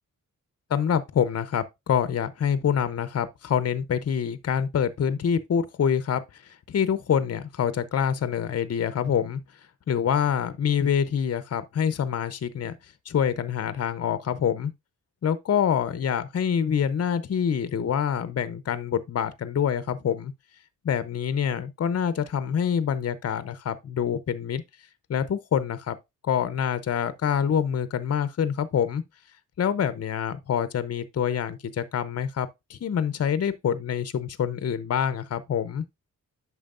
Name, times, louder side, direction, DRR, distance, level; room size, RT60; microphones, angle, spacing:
voice 1, 0.7-9.4 9.9-12.7 13.1-14.7 15.2-20.3 20.8-24.6 25.1-26.0 26.2-29.0 29.6-35.8, left 8 dB, 50° left, 0.7 m, -26 dB
8.9 x 6.2 x 2.5 m
wide cardioid pair, 125°, 32 cm